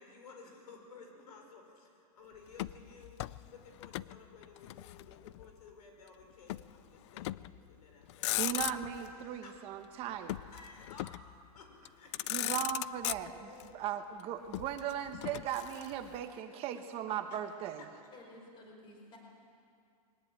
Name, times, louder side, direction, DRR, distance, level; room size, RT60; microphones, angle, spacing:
voice 1, 0.0-8.3 9.0-9.5 10.1-11.3 11.5-12.3 13.4-13.9 14.3-14.4 17.8-17.9, left 4 dB, 90° left, 3 dB, 5.9 m, -55 dB
Motor vehicle (road), 2.5-4.2 4.4-5.5 6.5-6.7 7.2-7.6 8.0-9.1 10.3-11.3 11.9-12.0 12.1-13.6 14.5-16.2, left 16 dB, 50° left, 0.5 m, -38 dB
voice 2, 8.4-10.4 12.3-17.8, right 10 dB, 30° right, 7 dB, 1.2 m, -38 dB
voice 3, 18.1-19.2, left 1 dB, 25° left, 0 dB, 5.2 m, -53 dB
22.0 x 18.5 x 9.1 m, 2.4 s
supercardioid pair, 160°, 19 cm